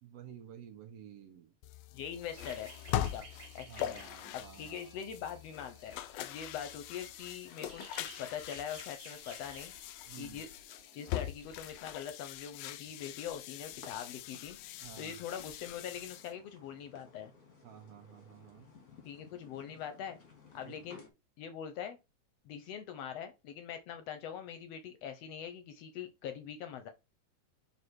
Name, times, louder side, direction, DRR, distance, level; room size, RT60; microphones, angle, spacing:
voice 1, 0.0-1.5 3.7-5.1 10.1-10.4 14.8-15.2 17.6-18.7 20.6-21.0, right 9 dB, 70° right, 1.8 m, -52 dB
sound 1, 1.6-16.3, left 12 dB, 90° left, 1.4 m, -42 dB
voice 2, 1.9-3.3 3.6-4.0 4.3-9.7 10.2-10.5 10.9-14.6 15.0-17.3 19.0-20.2 20.5-21.0 21.4-22.0 22.5-26.9, left 8 dB, 70° left, 1.7 m, -43 dB
sound 2, 2.3-11.8, right 4 dB, 45° right, 1.7 m, -56 dB
sound 3, 13.0-21.1, left 4 dB, 40° left, 1.6 m, -58 dB
5.4 x 4.1 x 4.5 m
omnidirectional pair, 3.4 m